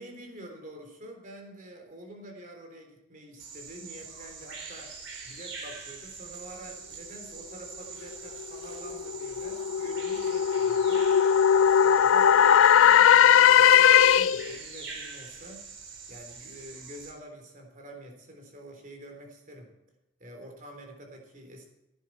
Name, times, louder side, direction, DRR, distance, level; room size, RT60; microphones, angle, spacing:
voice 1, 0.0-5.0 5.2-11.1 11.7-15.6 16.1-19.7 20.2-21.7, right 1 dB, 40° right, 3 dB, 3.5 m, -47 dB
Bird vocalization bird call bird song, 3.4-17.1, right 4 dB, 75° right, 4.2 m, -44 dB
sound 1, 8.4-14.6, left 9 dB, 80° left, 0.4 m, -19 dB
16.5 x 10.5 x 4.7 m, 0.92 s
head